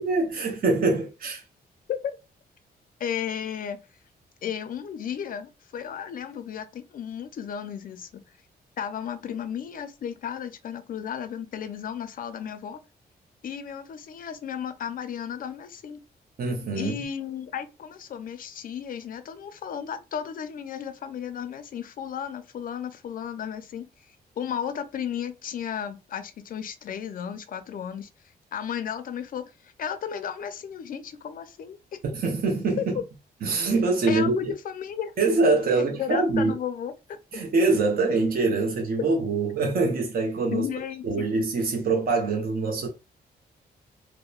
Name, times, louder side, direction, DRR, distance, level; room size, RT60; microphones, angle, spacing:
voice 1, 0.0-1.4 16.4-16.9 32.1-32.9 33.4-34.3 35.2-36.5 37.3-40.6 41.0-42.9, right 3 dB, 60° right, 0.7 m, -24 dB
voice 2, 3.0-3.8 4.4-8.2 8.8-12.8 13.4-16.0 16.8-23.9 24.4-28.1 28.5-32.0 32.8-32.9 34.1-35.2 35.7-37.2 40.5-41.3, left 8 dB, 55° left, 0.5 m, -34 dB
2.8 x 2.1 x 2.3 m
cardioid pair, 110°, 17 cm